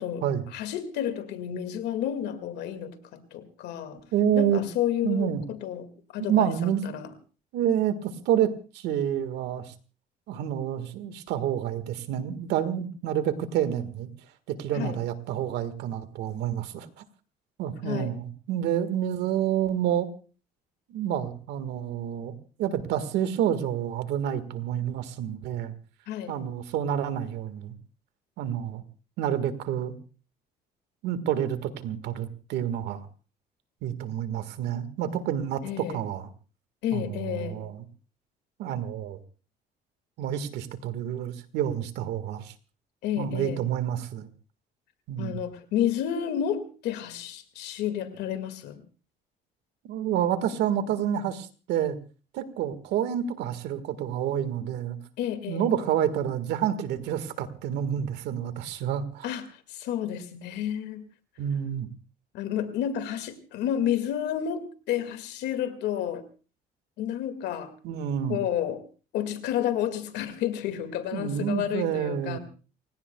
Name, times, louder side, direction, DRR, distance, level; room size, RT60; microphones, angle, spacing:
voice 1, 0.5-4.0 4.3-7.0 14.7-15.0 17.8-18.2 26.1-26.4 35.6-36.0 36.8-37.6 43.0-43.6 45.2-48.8 55.2-55.7 59.2-59.4 59.7-61.1 62.3-66.2 67.0-67.7 68.3-68.8 69.1-72.4, left 10 dB, 85° left, 2.1 m, -31 dB
voice 2, 4.1-4.6 5.0-5.4 6.3-7.0 7.5-9.7 10.3-14.1 14.5-16.9 17.6-20.1 20.9-25.7 26.3-27.7 28.4-28.8 29.2-29.9 31.0-33.0 33.8-36.3 36.9-37.8 38.6-39.2 40.2-42.5 43.2-44.3 45.1-45.4 49.8-52.0 52.3-55.0 55.5-59.3 61.4-61.9 67.8-68.4 71.1-72.4, right 9 dB, 85° right, 1.7 m, -28 dB
29.5 x 17.0 x 2.3 m
cardioid pair, 110°, 17 cm